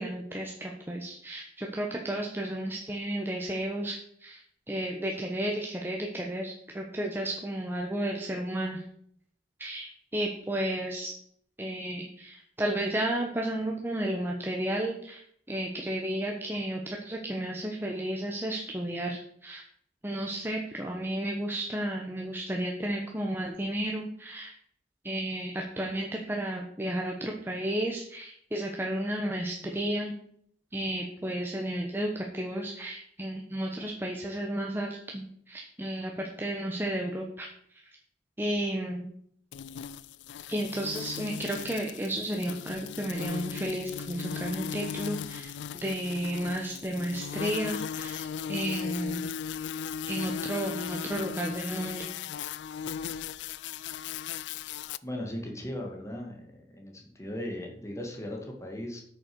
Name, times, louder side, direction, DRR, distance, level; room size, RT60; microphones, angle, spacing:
voice 1, 0.0-4.4 4.7-8.8 9.6-11.1 11.6-15.2 15.5-19.6 20.0-24.5 25.0-30.1 30.7-37.5 38.4-39.1 40.5-49.3 50.1-52.1, right 1 dB, 10° right, 0 dB, 1.1 m, -33 dB
sound 1, 39.5-55.0, left 8 dB, 75° left, 0.4 m, -37 dB
voice 2, 55.0-56.4 56.7-59.0, left 1 dB, 15° left, 0 dB, 2.2 m, -37 dB
8.8 x 6.6 x 6.2 m, 0.67 s
head